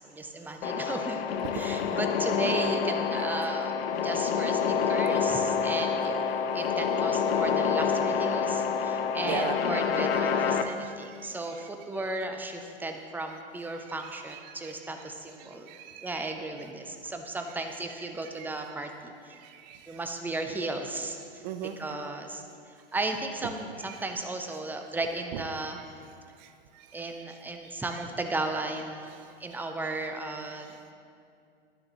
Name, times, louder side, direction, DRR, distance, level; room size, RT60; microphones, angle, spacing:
voice 1, 0.0-1.3 1.5-6.1 6.5-15.7 16.0-19.4 19.9-21.4 21.8-25.8 26.9-30.9, right 2 dB, 5° right, 5 dB, 0.5 m, -35 dB
sound 1, 0.6-10.6, left 6 dB, 80° left, 0.5 m, -27 dB
voice 2, 10.6-11.0 14.3-14.4 15.4-16.2 19.3-20.0 21.4-21.8 23.9-24.0 25.3-25.4 26.4-26.5 26.8-26.9, right 11 dB, 50° right, 8 dB, 0.6 m, -38 dB
10.5 x 6.7 x 3.0 m, 2.3 s
hypercardioid pair, 110°, 29 cm